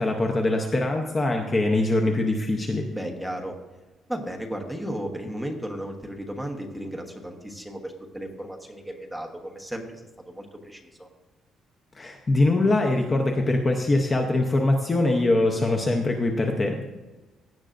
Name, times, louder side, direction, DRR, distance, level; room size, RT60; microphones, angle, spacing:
voice 1, 0.0-2.9 11.9-16.8, left 2 dB, 20° left, 2 dB, 0.8 m, -23 dB
voice 2, 2.9-3.5 4.1-11.1, equal, ahead, 1 dB, 1.2 m, -35 dB
16.5 x 10.5 x 2.6 m, 1.1 s
cardioid pair, 175°, 0 cm